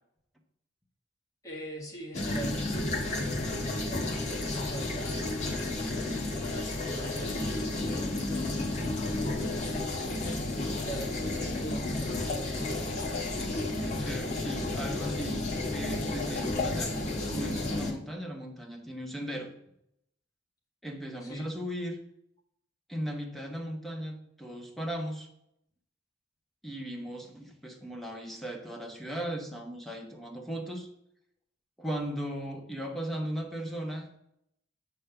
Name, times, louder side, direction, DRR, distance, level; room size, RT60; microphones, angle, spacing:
voice 1, 1.4-5.8 6.4-10.0 10.7-12.5 21.2-21.4, right 1 dB, 20° left, -2 dB, 1.7 m, -43 dB
sound 1, 2.1-17.9, left 2 dB, 40° left, 1.5 m, -32 dB
voice 2, 13.4-15.4 15.7-19.5 20.8-22.0 22.9-25.3 26.6-30.9 31.8-34.2, equal, ahead, 2 dB, 1.1 m, -37 dB
8.3 x 3.5 x 6.7 m, 0.77 s
head